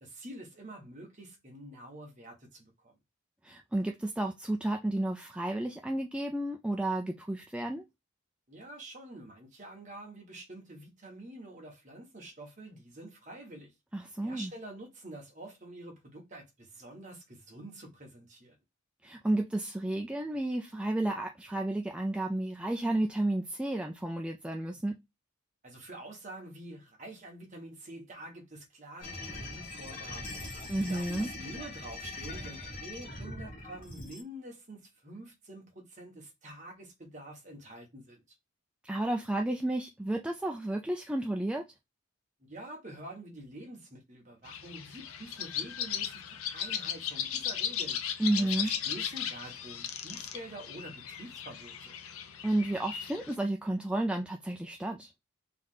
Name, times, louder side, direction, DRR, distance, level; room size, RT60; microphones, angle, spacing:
voice 1, 0.0-3.0 8.5-13.7 14.2-18.6 25.6-30.3 30.7-38.2 42.4-48.0 48.4-52.0, right 1 dB, 35° right, 1.5 m, -47 dB
voice 2, 3.4-7.8 13.9-14.5 19.0-24.9 30.7-31.3 38.8-41.6 48.2-48.7 52.4-55.1, right 1 dB, 5° right, 0.3 m, -32 dB
sound 1, 29.0-34.2, left 2 dB, 40° left, 1.4 m, -41 dB
sound 2, 44.4-53.3, left 9 dB, 80° left, 0.6 m, -37 dB
3.4 x 3.2 x 3.8 m
head